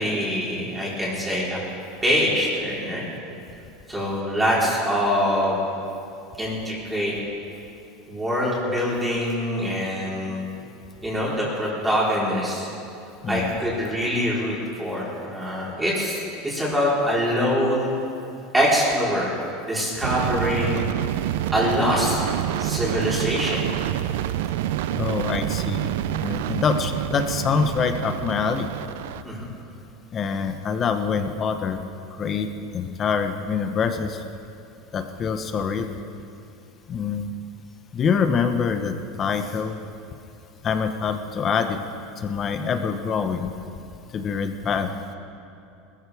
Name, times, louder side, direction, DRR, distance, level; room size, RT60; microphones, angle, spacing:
voice 1, 0.0-1.6 2.0-3.1 3.9-5.6 6.4-7.1 8.1-10.5 11.0-12.7 13.2-17.9 18.5-19.3 19.7-20.8 21.5-22.2 22.6-23.6 29.2-29.5, equal, 10° right, -6 dB, 4.3 m, -24 dB
sound 1, 20.0-29.2, right 12 dB, 80° right, 0.5 m, -27 dB
voice 2, 24.9-28.7 30.1-31.8 32.2-34.2 34.9-35.9 36.9-37.3 37.9-39.8 40.6-41.8 42.2-43.5 44.1-44.9, left 6 dB, 30° left, 7 dB, 1.0 m, -25 dB
20.5 x 14.5 x 3.5 m, 2.6 s
supercardioid pair, 135°, 0 cm